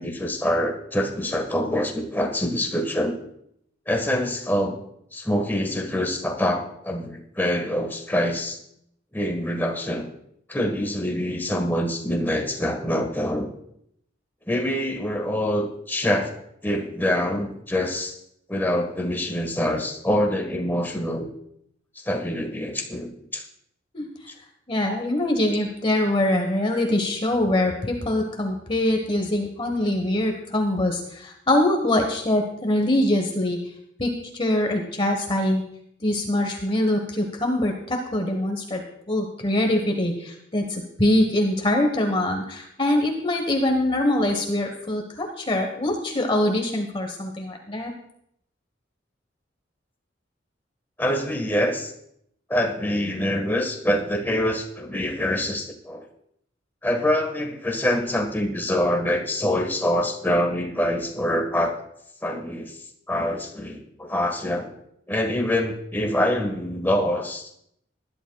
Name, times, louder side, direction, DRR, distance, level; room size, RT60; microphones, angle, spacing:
voice 1, 0.0-3.1 3.9-4.8 5.1-8.6 9.1-10.0 10.5-13.5 14.5-16.3 16.6-18.2 18.5-21.3 22.0-23.4 51.0-51.9 52.5-56.0 56.8-61.8 62.2-62.8 63.1-64.7 65.1-67.5, left 1 dB, 10° left, 2 dB, 1.4 m, -25 dB
voice 2, 24.7-33.6 34.0-35.6 36.0-47.9, left 1 dB, 30° left, 3 dB, 1.2 m, -23 dB
19.5 x 11.0 x 2.3 m, 0.73 s
head